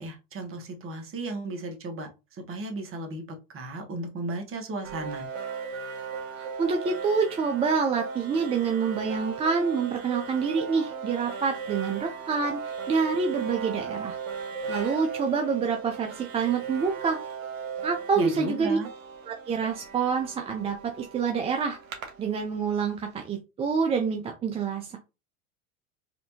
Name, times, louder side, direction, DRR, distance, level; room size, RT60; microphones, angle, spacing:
voice 1, 0.0-3.2 3.5-5.3 18.2-18.9, right 2 dB, 30° right, 1.2 m, -35 dB
sound 1, 4.8-22.8, right 6 dB, 80° right, 1.2 m, -37 dB
voice 2, 6.4-14.2 14.7-17.2 17.8-18.8 19.3-21.8 22.2-25.0, right 5 dB, 15° right, 0.4 m, -27 dB
4.3 x 2.6 x 2.7 m
hypercardioid pair, 95°, 41 cm